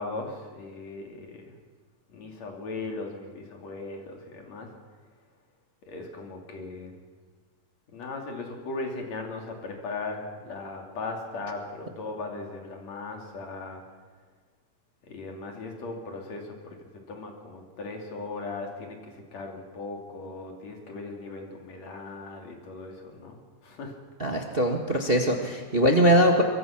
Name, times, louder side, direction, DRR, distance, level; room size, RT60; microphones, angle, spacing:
voice 1, 0.0-1.5 2.1-4.7 5.8-6.9 7.9-13.8 15.1-16.8 17.1-23.4 23.6-23.9, left 3 dB, 55° left, 2 dB, 4.0 m, -38 dB
voice 2, 24.2-26.4, equal, 25° right, 2 dB, 1.2 m, -22 dB
24.0 x 23.0 x 6.0 m, 1.5 s
omnidirectional pair, 3.6 m